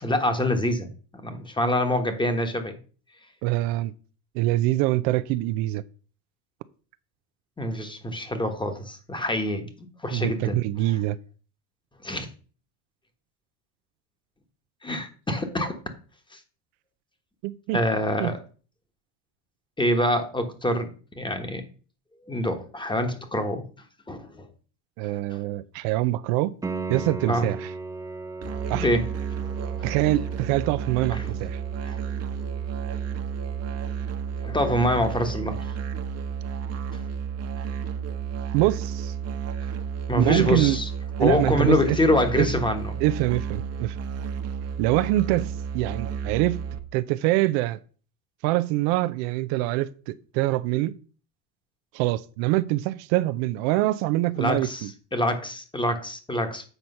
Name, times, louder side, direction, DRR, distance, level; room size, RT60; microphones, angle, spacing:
voice 1, 0.0-2.8 7.6-10.6 12.0-12.3 14.8-15.8 16.3-16.4 17.7-18.4 19.8-20.9 21.2-21.6 22.3-23.7 24.1-24.5 27.3-27.5 28.7-29.1 31.1-31.3 31.8-32.0 34.4-35.6 40.1-40.9 41.2-42.9 54.4-56.7, left 1 dB, 10° left, 1.2 m, -25 dB
voice 2, 3.4-3.9 4.3-5.8 10.1-11.2 17.4-17.8 18.2-18.3 25.0-26.5 26.9-27.7 28.7-28.9 29.8-31.6 38.5-39.1 40.2-40.8 41.2-42.0 42.4-42.5 43.0-44.0 44.8-46.6 46.9-47.8 48.4-50.9 51.9-54.9, right 16 dB, 70° right, 0.6 m, -24 dB
Piano, 26.6-37.3 40.6-40.7, right 4 dB, 10° right, 0.5 m, -40 dB
Musical instrument, 28.4-46.8, right 7 dB, 30° right, 1.0 m, -32 dB
8.1 x 4.4 x 5.4 m
supercardioid pair, 125°, 47 cm